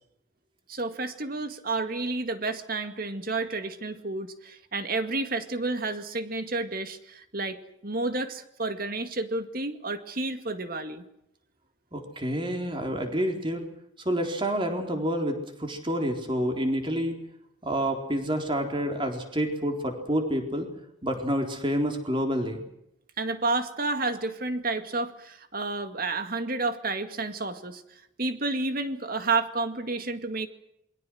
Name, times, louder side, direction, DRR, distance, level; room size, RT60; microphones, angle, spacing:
voice 1, 0.7-11.0 23.2-27.8 28.2-30.5, right 3 dB, 50° right, 9 dB, 2.1 m, -30 dB
voice 2, 11.9-13.6 14.0-17.2 17.6-20.7 21.0-22.6, equal, 25° right, 4 dB, 4.0 m, -28 dB
27.5 x 22.5 x 6.4 m, 0.80 s
head